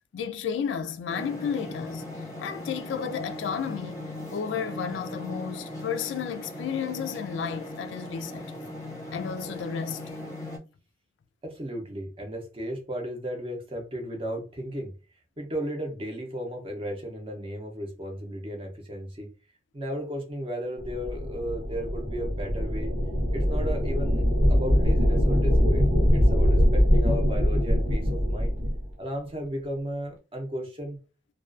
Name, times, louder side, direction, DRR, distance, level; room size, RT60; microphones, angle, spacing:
voice 1, 0.1-2.1 2.4-8.4 9.1-10.0, left 7 dB, 80° left, 0.3 m, -32 dB
sound 1, 1.1-10.6, left 1 dB, 15° left, 0.5 m, -38 dB
voice 2, 11.4-14.9 15.4-19.3 19.7-22.9 23.3-28.6 29.0-31.0, equal, 30° right, 0.5 m, -35 dB
sound 2, 20.8-28.8, equal, 90° right, 0.9 m, -23 dB
2.3 x 2.2 x 2.4 m
head